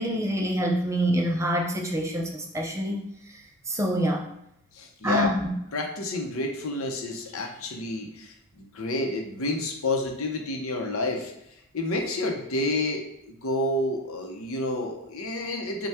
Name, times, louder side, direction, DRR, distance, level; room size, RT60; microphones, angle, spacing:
voice 1, 0.0-4.3 5.0-5.5, equal, 15° right, 0 dB, 0.4 m, -26 dB
voice 2, 4.7-5.3 5.7-11.3 11.7-15.9, left 2 dB, 70° left, 3 dB, 0.7 m, -29 dB
5.4 x 2.3 x 3.5 m, 0.81 s
head